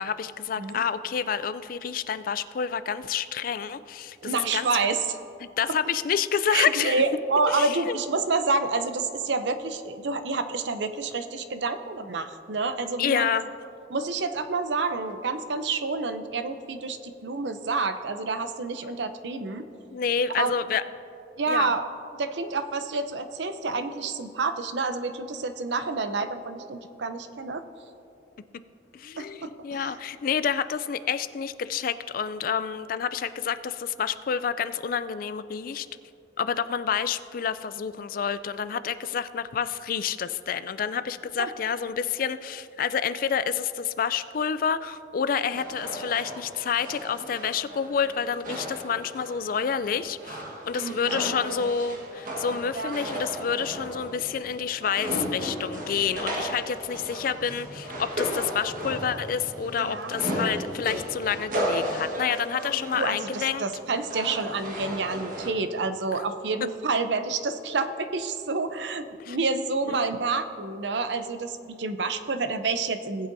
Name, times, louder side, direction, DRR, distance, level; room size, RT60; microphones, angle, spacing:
voice 1, 0.0-4.7 5.4-7.0 7.5-8.0 13.0-13.5 19.3-19.4 19.9-20.8 21.5-21.7 28.9-35.9 36.4-63.6 69.2-69.4 69.8-70.0, left 7 dB, 50° left, 13 dB, 0.4 m, -28 dB
voice 2, 4.2-5.2 6.5-13.3 13.9-19.7 20.4-20.5 21.4-21.9 22.1-27.6 29.2-29.9 41.4-41.5 50.8-51.2 51.5-51.7 52.7-53.0 59.9-60.1 63.0-73.3, right 3 dB, 75° right, 9 dB, 0.6 m, -28 dB
sound 1, 45.5-65.5, equal, 50° right, 1.4 m, -35 dB
18.5 x 8.0 x 2.7 m, 2.7 s
head